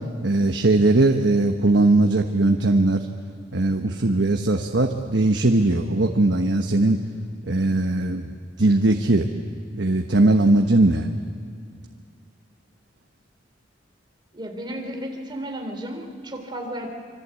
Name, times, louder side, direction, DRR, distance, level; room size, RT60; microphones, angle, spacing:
voice 1, 0.2-3.1 3.5-7.0 7.4-8.3 8.6-9.3 9.7-11.1, right 2 dB, 65° right, 4 dB, 1.2 m, -19 dB
voice 2, 14.3-16.9, equal, 25° right, 2 dB, 3.4 m, -33 dB
26.0 x 25.0 x 8.4 m, 2.2 s
head